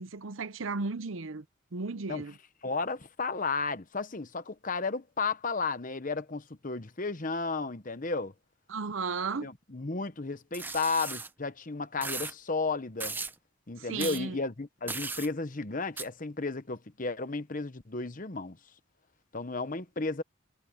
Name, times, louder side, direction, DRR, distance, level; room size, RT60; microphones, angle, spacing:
voice 1, 0.0-1.4 1.7-2.3 8.7-9.5 13.8-14.4, right 4 dB, 70° right, 0.8 m, -35 dB
voice 2, 2.6-8.3 9.4-13.2 13.7-18.6 19.3-20.2, left 4 dB, 40° left, 1.0 m, -33 dB
sound 1, 10.5-11.3 12.0-12.3 13.0-13.3 14.0-14.2 14.9-15.3 16.0-16.1, right 3 dB, 10° right, 0.7 m, -36 dB
head